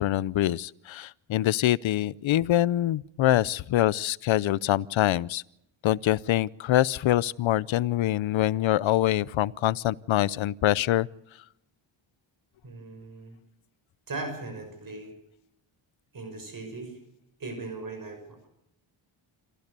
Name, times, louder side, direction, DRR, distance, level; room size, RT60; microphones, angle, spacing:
voice 1, 0.0-5.4 5.8-11.1, left 13 dB, 70° left, 0.7 m, -25 dB
voice 2, 12.6-13.3 14.1-15.1 16.1-17.0 17.4-18.5, right 3 dB, 45° right, 6.1 m, -38 dB
27.0 x 15.0 x 6.8 m
wide cardioid pair, 120°, 49 cm